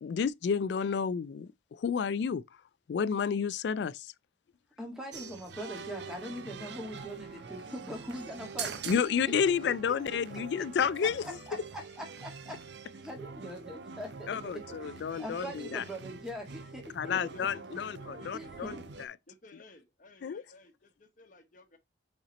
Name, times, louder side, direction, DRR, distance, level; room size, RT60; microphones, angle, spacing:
voice 1, 0.0-2.4 2.9-4.1 8.9-11.4 14.3-15.8 16.9-19.1 20.2-20.4, left 6 dB, 70° left, 0.3 m, -31 dB
voice 2, 4.8-8.7 11.2-12.5 13.0-16.8 18.1-18.8, equal, 5° right, 1.7 m, -42 dB
sound 1, 5.1-19.1, right 5 dB, 70° right, 0.6 m, -44 dB
Wind instrument woodwind instrument, 6.9-11.4, right 6 dB, 30° right, 1.5 m, -56 dB
voice 3, 17.1-18.8 19.3-21.8, left 1 dB, 45° left, 1.1 m, -52 dB
5.6 x 4.3 x 4.0 m
head